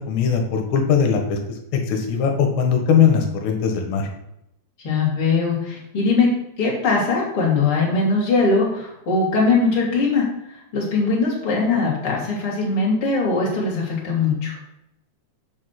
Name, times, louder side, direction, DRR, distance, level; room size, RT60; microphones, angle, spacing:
voice 1, 0.0-1.4 1.9-4.1, left 7 dB, 70° left, 4 dB, 3.5 m, -19 dB
voice 2, 4.8-6.3 6.6-10.3 10.7-14.6, left 4 dB, 35° left, -2 dB, 2.8 m, -20 dB
7.5 x 7.4 x 5.9 m, 0.82 s
omnidirectional pair, 5.4 m